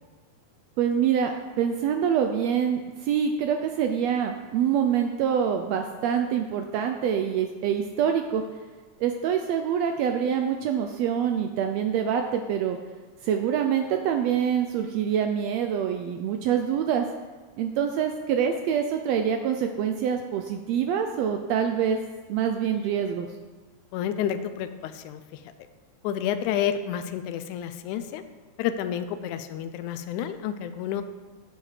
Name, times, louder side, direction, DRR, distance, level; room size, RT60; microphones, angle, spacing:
voice 1, 0.8-8.4 9.0-12.8 13.2-17.1 17.6-22.0 22.3-23.3, right 8 dB, 80° right, 5 dB, 1.5 m, -25 dB
voice 2, 23.9-25.4 26.0-28.2 28.6-31.0, left 9 dB, 85° left, 10 dB, 2.0 m, -30 dB
9.1 x 7.2 x 4.9 m, 1.3 s
omnidirectional pair, 3.4 m